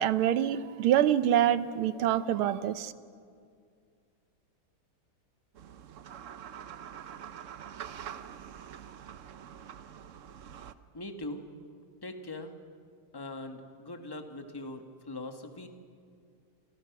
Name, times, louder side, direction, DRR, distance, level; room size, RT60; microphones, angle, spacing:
voice 1, 0.0-2.9, right 11 dB, 85° right, 13 dB, 1.7 m, -26 dB
sound 1, 5.5-10.7, right 9 dB, 65° right, 0.7 m, -45 dB
voice 2, 10.9-11.5 12.0-12.5 13.1-15.7, left 2 dB, 10° left, 5 dB, 1.5 m, -41 dB
29.0 x 25.5 x 6.1 m, 2.2 s
omnidirectional pair, 2.3 m